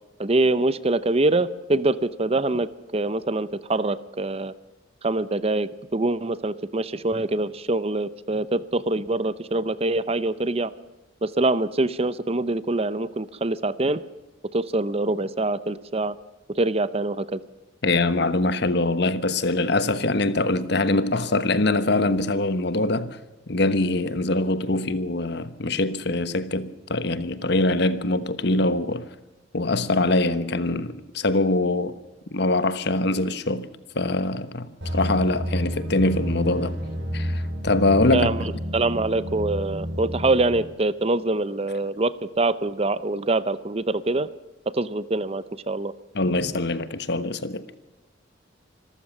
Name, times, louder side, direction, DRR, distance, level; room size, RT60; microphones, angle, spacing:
voice 1, 0.2-4.5 5.0-10.7 11.2-14.0 14.5-16.1 16.5-17.4 38.1-44.3 44.7-45.9, right 2 dB, 30° right, 0.7 m, -24 dB
voice 2, 17.8-23.2 23.5-29.0 29.5-31.9 32.3-33.7 33.9-36.7 37.1-38.3 46.1-47.7, left 2 dB, 60° left, 1.2 m, -23 dB
sound 1, 34.8-40.6, equal, 65° right, 6.5 m, -30 dB
26.0 x 14.0 x 7.3 m
head